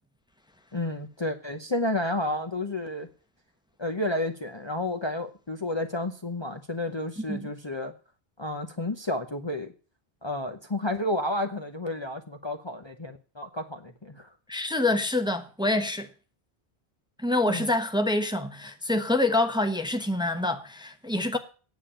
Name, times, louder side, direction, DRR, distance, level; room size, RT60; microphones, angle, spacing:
voice 1, 0.7-3.1 3.8-7.9 8.4-9.7 10.2-14.3 17.5-17.7, left 1 dB, 30° left, 0.9 m, -31 dB
voice 2, 14.5-16.1 17.2-21.4, left 2 dB, 5° right, 1.0 m, -26 dB
9.3 x 7.1 x 8.9 m
omnidirectional pair, 1.0 m